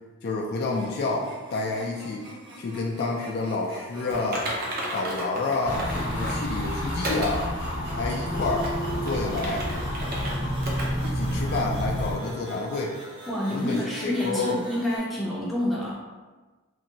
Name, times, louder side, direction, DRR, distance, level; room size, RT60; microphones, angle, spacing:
voice 1, 0.2-2.3 2.6-4.4 4.9-7.4 8.0-8.7 9.0-9.6 11.0-12.9 13.5-14.6, left 3 dB, 45° left, -1 dB, 0.3 m, -29 dB
sound 1, 0.6-15.0, right 1 dB, 20° right, 0.9 m, -44 dB
Typing, 4.1-6.4 7.0-7.4 7.9-8.0 8.5-10.3 10.6-10.9 11.2-11.3 11.9-12.0, right 1 dB, 45° right, 0.6 m, -33 dB
sound 2, 5.6-12.2, equal, 70° left, 0.8 m, -29 dB
voice 2, 13.3-16.0, left 1 dB, ahead, -7 dB, 0.5 m, -28 dB
3.0 x 2.6 x 2.7 m, 1.3 s
head